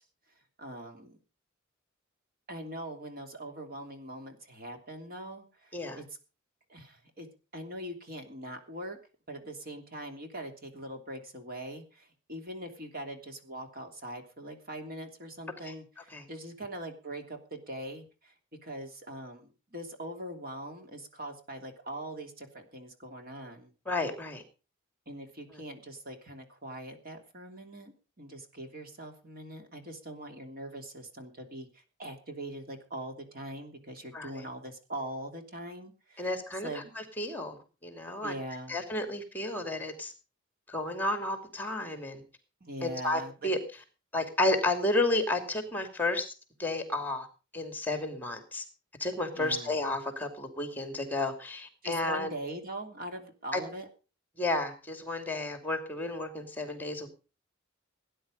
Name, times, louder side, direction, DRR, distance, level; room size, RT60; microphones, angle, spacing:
voice 1, 0.6-1.2 2.5-6.0 6.7-7.3 7.5-9.0 9.3-18.3 18.6-23.7 25.1-36.3 36.6-36.9 38.2-38.8 42.6-43.5 49.3-49.7 51.8-53.9, right 1 dB, 50° right, 4 dB, 3.0 m, -42 dB
voice 2, 23.9-24.4 25.5-25.6 34.1-34.4 36.2-38.3 38.7-40.1 40.7-42.2 42.8-43.6 44.1-46.3 46.6-47.3 47.5-48.6 49.0-52.3 53.5-53.6 54.4-57.1, left 2 dB, 10° left, 7 dB, 2.6 m, -32 dB
18.0 x 10.0 x 5.1 m, 0.34 s
head